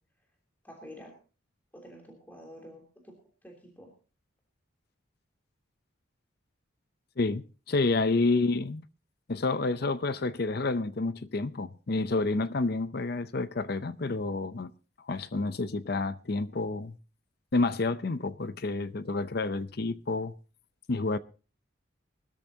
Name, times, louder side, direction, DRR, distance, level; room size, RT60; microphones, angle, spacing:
voice 1, 0.6-1.2 1.7-3.1 3.4-3.9, equal, 10° left, 3.1 m, -48 dB
voice 2, 7.2-8.8 9.3-14.7 15.1-17.0 17.5-20.3 20.9-21.2, left 3 dB, 50° left, 0.6 m, -29 dB
22.0 x 13.5 x 2.8 m
head